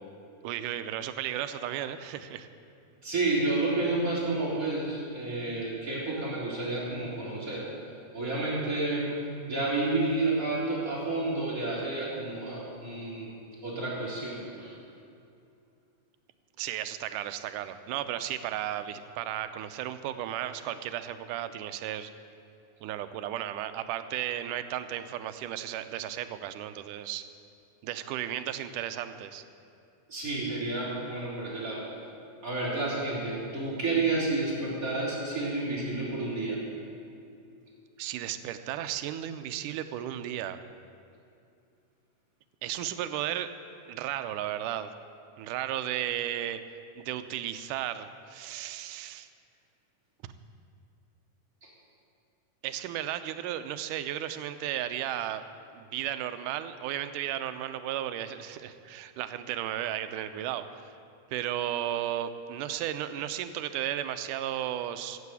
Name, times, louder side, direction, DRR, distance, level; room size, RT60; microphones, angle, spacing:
voice 1, 0.4-2.5 16.6-22.1 22.8-27.2 27.8-29.4 38.0-40.6 42.6-43.5 43.9-44.9 45.4-46.6 47.0-49.3 50.2-50.3 52.6-55.4 55.7-60.9 61.3-65.2, right 11 dB, 85° right, 10 dB, 2.2 m, -34 dB
voice 2, 3.0-7.7 8.1-9.1 9.5-13.3 13.6-14.7 30.1-31.8 32.4-36.6 51.6-51.7, right 2 dB, 25° right, -6 dB, 4.0 m, -30 dB
14.5 x 8.5 x 8.3 m, 2.5 s
omnidirectional pair, 3.6 m